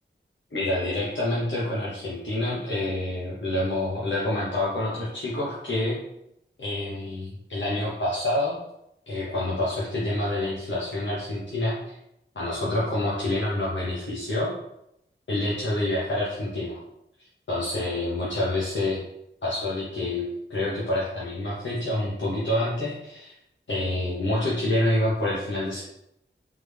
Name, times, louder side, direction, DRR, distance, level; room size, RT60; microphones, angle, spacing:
voice 1, 0.5-6.0 6.6-8.6 9.1-12.0 12.3-14.5 15.3-16.8 17.5-19.0 19.4-23.4 23.7-25.8, left 1 dB, 75° left, -7 dB, 0.9 m, -27 dB
3.7 x 3.3 x 3.3 m, 0.82 s
wide cardioid pair, 55°, 19 cm